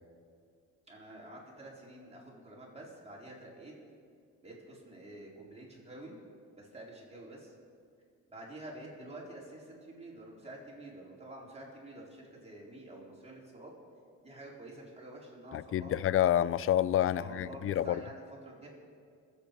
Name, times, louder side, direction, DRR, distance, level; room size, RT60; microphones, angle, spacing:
voice 1, 0.9-3.7 4.4-6.2 6.5-7.5 8.3-13.7 14.2-16.0 17.1-18.7, right 1 dB, 20° right, 4.3 m, -48 dB
voice 2, 15.5-18.0, left 11 dB, 45° left, 0.4 m, -28 dB
22.0 x 8.4 x 5.3 m
cardioid pair, 90°, 30 cm